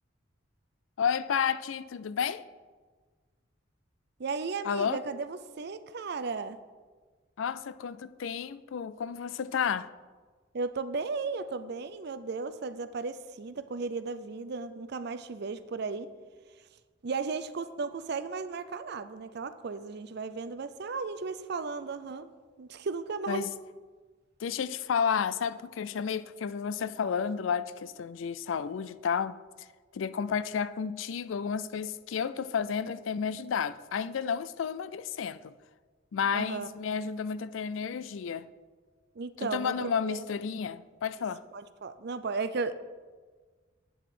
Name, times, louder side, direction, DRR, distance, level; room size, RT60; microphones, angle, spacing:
voice 1, 1.0-2.4 4.6-5.0 7.4-9.9 23.3-23.5 24.4-29.4 29.9-35.5 36.1-38.5 39.4-41.4, left 7 dB, 85° left, 0.4 m, -31 dB
voice 2, 4.2-6.6 10.5-16.1 17.0-22.3 22.6-23.5 36.3-36.7 39.2-40.2 41.5-42.7, right 4 dB, 60° right, 0.5 m, -35 dB
8.6 x 7.8 x 4.9 m
head